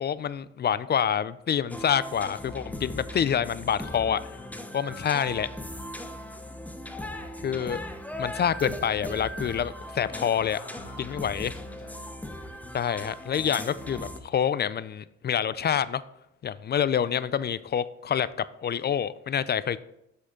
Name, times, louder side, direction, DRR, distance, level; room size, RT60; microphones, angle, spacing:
voice 1, 0.0-4.2 4.7-5.5 7.4-7.8 8.2-10.6 11.0-11.5 12.7-16.0 16.4-18.3 18.6-19.8, left 8 dB, 35° left, 17 dB, 0.4 m, -27 dB
sound 1, 1.7-14.2, left 1 dB, 5° left, 0.8 m, -38 dB
voice 2, 10.5-12.5, left 3 dB, 70° left, 1 dB, 1.6 m, -50 dB
7.7 x 6.3 x 3.7 m, 0.81 s
cardioid pair, 90°, 30 cm